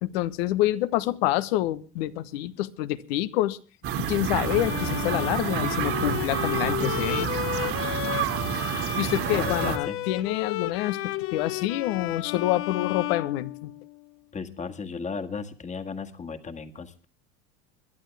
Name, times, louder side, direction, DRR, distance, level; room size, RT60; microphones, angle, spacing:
voice 1, 0.0-3.6 4.0-7.3 9.0-13.7, left 15 dB, 75° left, 14 dB, 1.3 m, -27 dB
sound 1, 3.8-9.8, right 8 dB, 45° right, 2.3 m, -29 dB
Bowed string instrument, 4.3-14.0, left 15 dB, 45° left, 0.8 m, -33 dB
voice 2, 9.3-10.0 14.3-17.0, left 5 dB, 20° left, 7 dB, 1.9 m, -35 dB
21.5 x 12.0 x 3.5 m, 0.37 s
supercardioid pair, 100°, 31 cm